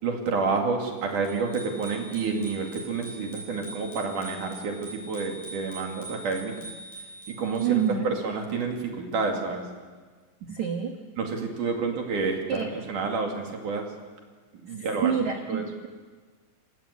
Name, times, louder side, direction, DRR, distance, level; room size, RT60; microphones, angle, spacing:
voice 1, 0.0-6.5 7.3-9.6 11.2-12.6 12.9-13.9 14.6-15.1 15.5-15.6, right 4 dB, 50° right, 2 dB, 3.5 m, -29 dB
Bicycle bell, 1.2-7.9, right 1 dB, 60° left, 10.0 m, -43 dB
voice 2, 7.6-8.1 10.4-10.9 12.5-12.7 14.7-15.9, right 8 dB, 65° right, 4 dB, 1.8 m, -28 dB
26.5 x 18.0 x 8.3 m, 1.5 s
omnidirectional pair, 5.3 m